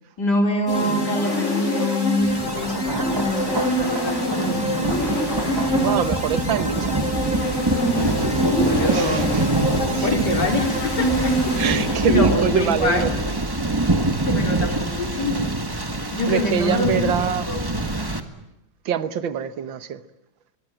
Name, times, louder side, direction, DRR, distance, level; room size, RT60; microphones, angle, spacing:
voice 1, 0.2-4.9 8.2-9.5 10.0-13.1 14.3-15.4 16.1-17.6, left 2 dB, 60° left, 4.4 m, -25 dB
sound 1, 0.7-12.4, equal, 35° left, 5.3 m, -25 dB
Thunder, 2.2-18.2, right 2 dB, 15° right, 1.5 m, -25 dB
voice 2, 5.7-7.0 8.9-9.2 9.9-10.2 11.5-13.1 16.0-17.5 18.9-20.0, right 9 dB, 85° right, 1.9 m, -24 dB
23.5 x 21.5 x 8.9 m
omnidirectional pair, 2.0 m